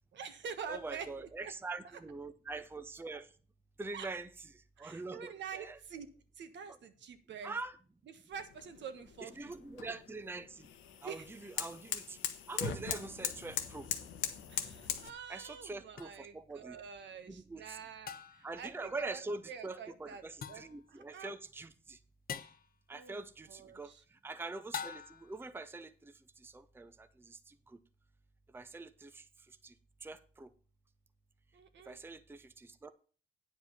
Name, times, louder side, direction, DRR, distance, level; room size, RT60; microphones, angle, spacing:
voice 1, 0.1-1.3 1.6-1.8 3.1-3.2 3.9-4.1 4.8-6.1 6.4-7.5 8.1-9.5 11.0-11.3 14.5-19.2 19.5-20.2 20.5-20.6 20.9-21.3 22.9-24.0 31.5-32.0, right 7 dB, 65° right, 8 dB, 1.3 m, -47 dB
voice 2, 0.7-3.3 3.8-4.3 4.8-5.8 6.7-6.8 7.4-7.8 9.2-10.7 11.0-12.2 12.5-13.9 15.3-16.8 17.3-17.8 18.4-22.0 22.9-23.9 24.2-25.9 26.4-27.5 28.5-29.2 29.6-29.7 30.0-30.5 31.9-32.9, right 3 dB, 10° right, 11 dB, 0.6 m, -44 dB
sound 1, 8.3-15.1, left 9 dB, 85° left, 1.2 m, -41 dB
sound 2, 16.0-16.1 18.1-18.6 20.4-20.8 22.3-22.7 24.7-25.4, left 7 dB, 50° left, 0.9 m, -43 dB
9.1 x 5.2 x 6.9 m, 0.40 s
cardioid pair, 90°, 20 cm